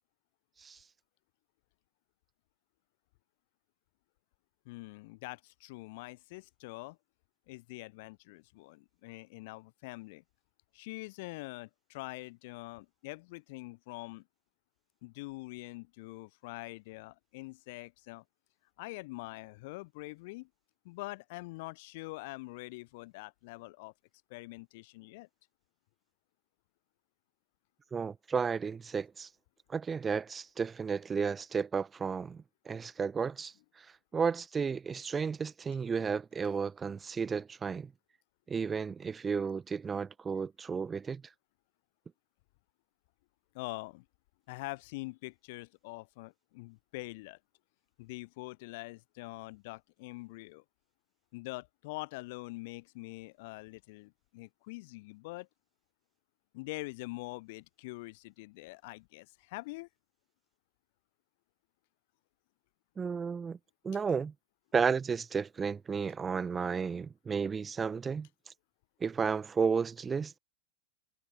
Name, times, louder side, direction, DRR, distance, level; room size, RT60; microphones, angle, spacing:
voice 1, 4.7-7.0 7.5-10.2 10.7-14.2 15.0-18.2 18.8-20.5 20.8-23.9 24.3-25.3 43.5-44.0 44.5-47.4 48.0-50.6 51.3-55.5 56.5-59.9, left 24 dB, 50° left, 0.8 m, -44 dB
voice 2, 27.9-29.3 29.7-33.9 34.1-37.9 38.5-41.2 63.0-63.6 63.8-64.3 64.7-68.5 69.0-70.3, right 5 dB, 15° right, 1.3 m, -33 dB
figure-of-eight pair, 90°, 0 cm